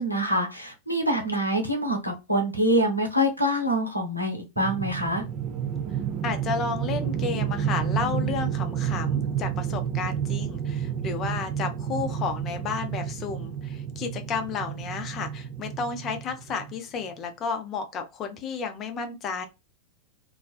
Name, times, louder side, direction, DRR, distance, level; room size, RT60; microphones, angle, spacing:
voice 1, 0.0-5.2, equal, 90° left, 0.6 m, -25 dB
sound 1, 4.6-16.8, right 9 dB, 30° right, 0.4 m, -30 dB
voice 2, 6.2-19.5, left 5 dB, 30° left, 0.5 m, -32 dB
2.4 x 2.2 x 2.3 m
figure-of-eight pair, 90°, 0 cm